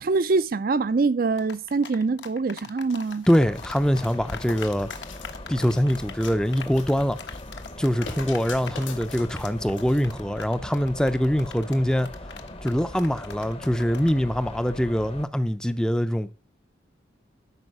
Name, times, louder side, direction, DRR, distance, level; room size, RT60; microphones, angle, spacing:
voice 1, 0.0-3.3, right 4 dB, 50° right, 0.4 m, -24 dB
sound 1, 1.4-14.2, left 6 dB, 70° left, 1.1 m, -41 dB
sound 2, 2.9-10.0 10.5-10.6, left 5 dB, 90° left, 2.1 m, -44 dB
sound 3, 3.3-15.3, left 1 dB, 30° left, 0.8 m, -40 dB
voice 2, 3.3-4.9 5.5-7.2 7.8-12.1 12.6-16.3, equal, 5° left, 0.5 m, -23 dB
12.5 x 5.4 x 5.4 m
head